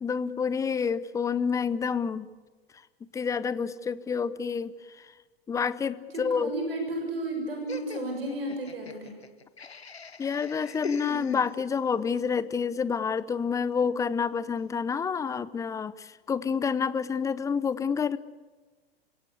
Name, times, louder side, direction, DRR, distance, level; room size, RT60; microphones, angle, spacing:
voice 1, 0.0-2.3 3.1-4.7 5.5-6.5 10.2-18.2, left 6 dB, 10° left, 17 dB, 0.7 m, -28 dB
voice 2, 6.1-9.2, right 2 dB, 65° right, 3 dB, 6.9 m, -33 dB
Laughter, 7.7-11.9, left 4 dB, 80° left, 1.3 m, -41 dB
29.0 x 17.5 x 8.4 m, 1.3 s
figure-of-eight pair, 105°, 31 cm